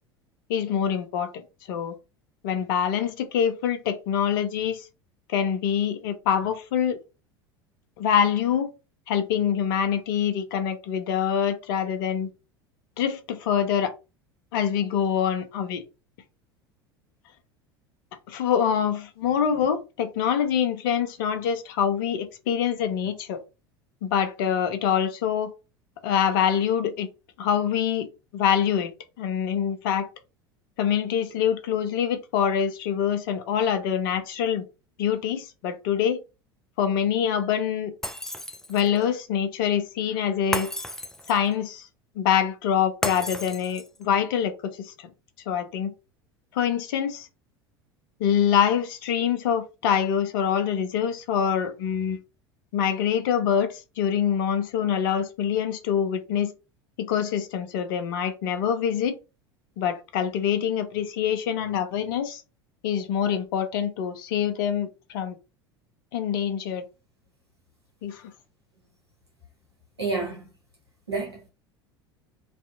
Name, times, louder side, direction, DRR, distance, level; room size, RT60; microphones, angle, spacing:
voice 1, 0.5-1.4 1.7-2.0 2.4-4.9 5.3-7.0 8.0-8.7 9.1-12.3 13.0-13.9 14.5-15.8 18.3-23.4 24.0-25.5 26.0-27.1 27.4-28.1 28.3-28.9 29.2-30.1 30.8-34.7 35.0-36.2 36.8-37.9 38.7-40.7 41.3-41.9 42.2-45.1 45.5-45.9 46.5-47.3 48.2-52.2 52.7-56.5 57.0-59.2 59.8-62.4 62.8-65.4 66.1-66.9 68.0-68.3, left 8 dB, 55° left, 0.6 m, -25 dB
Shatter, 38.0-39.0 40.5-41.5 43.0-44.0, left 1 dB, 5° left, 0.3 m, -32 dB
voice 2, 70.0-70.5 71.1-71.5, right 3 dB, 85° right, 0.9 m, -29 dB
2.5 x 2.5 x 2.5 m
figure-of-eight pair, 75°, 13 cm